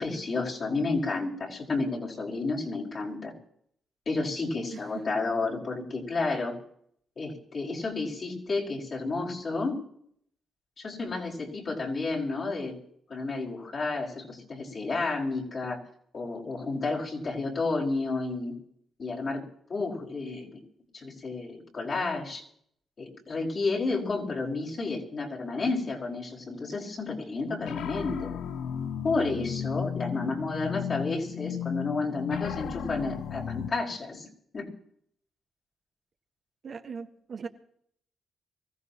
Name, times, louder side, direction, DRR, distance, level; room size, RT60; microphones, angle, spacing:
voice 1, 0.0-3.3 4.1-6.6 7.2-9.8 10.8-12.8 13.1-15.8 16.1-18.6 19.0-19.4 19.7-20.6 20.9-22.4 23.0-28.3 29.0-34.3 34.5-34.7, left 3 dB, 50° left, -3 dB, 5.5 m, -31 dB
voice 2, 4.7-5.0 36.6-37.5, right 5 dB, 55° right, 6 dB, 1.5 m, -39 dB
sound 1, 27.6-33.7, left 8 dB, 80° left, 0.8 m, -34 dB
24.5 x 15.5 x 3.0 m, 0.66 s
cardioid pair, 70°, 0 cm